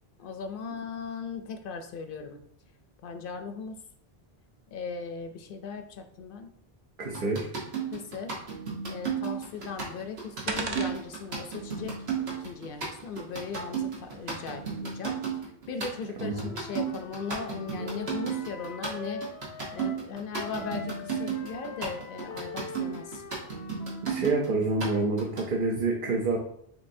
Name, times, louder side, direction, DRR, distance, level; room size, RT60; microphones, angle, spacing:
voice 1, 0.2-2.4 3.0-3.8 4.7-6.5 7.2-7.4 7.9-8.4 8.9-19.2 19.7-23.2, left 5 dB, 65° left, 6 dB, 0.7 m, -38 dB
voice 2, 7.0-7.5 16.2-16.5 24.0-26.4, right 3 dB, 60° right, 0 dB, 0.8 m, -27 dB
sound 1, 7.1-25.4, right 6 dB, 85° right, 1.5 m, -33 dB
sound 2, 9.3-14.8, right 3 dB, 40° right, 0.4 m, -42 dB
Wind instrument woodwind instrument, 16.3-20.1 20.3-24.3, left 4 dB, 90° left, 0.9 m, -43 dB
6.6 x 2.7 x 2.6 m, 0.66 s
omnidirectional pair, 1.0 m